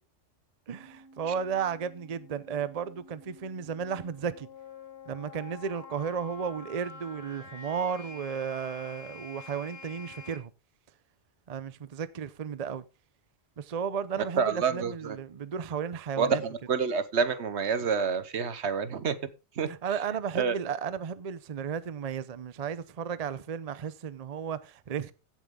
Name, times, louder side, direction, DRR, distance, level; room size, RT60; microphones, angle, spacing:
sound 1, 0.7-10.4, left 4 dB, 60° left, 1.9 m, -48 dB
voice 1, 0.7-4.5 5.1-10.5 11.5-12.8 13.6-16.4 19.7-25.1, right 7 dB, 40° right, 0.6 m, -34 dB
voice 2, 14.4-15.2 16.2-19.2 19.6-19.7 20.3-20.5, right 6 dB, 70° right, 1.2 m, -28 dB
15.5 x 7.4 x 3.7 m
omnidirectional pair, 1.2 m